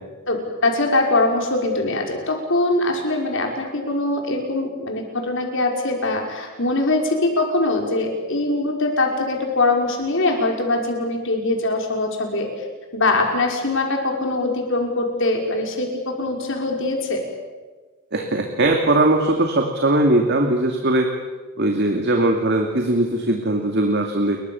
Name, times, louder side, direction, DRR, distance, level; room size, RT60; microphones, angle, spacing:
voice 1, 0.3-12.7 12.9-17.2, left 2 dB, 60° left, 2 dB, 5.4 m, -22 dB
voice 2, 18.1-21.1 21.6-24.4, right 1 dB, 50° right, 3 dB, 2.6 m, -20 dB
29.5 x 23.5 x 7.2 m, 1.3 s
head